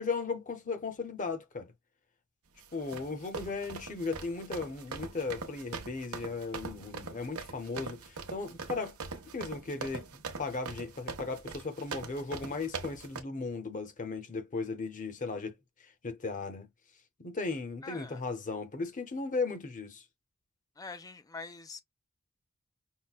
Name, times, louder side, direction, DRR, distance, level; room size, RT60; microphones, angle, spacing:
voice 1, 0.0-1.7 2.7-9.0 9.3-15.5 15.8-16.7 17.2-20.1, left 4 dB, 35° left, 0.7 m, -36 dB
sound 1, 2.6-13.2, right 4 dB, 80° right, 0.8 m, -42 dB
voice 2, 17.8-18.2 20.8-21.8, left 4 dB, 15° left, 0.4 m, -44 dB
5.6 x 2.1 x 2.3 m
head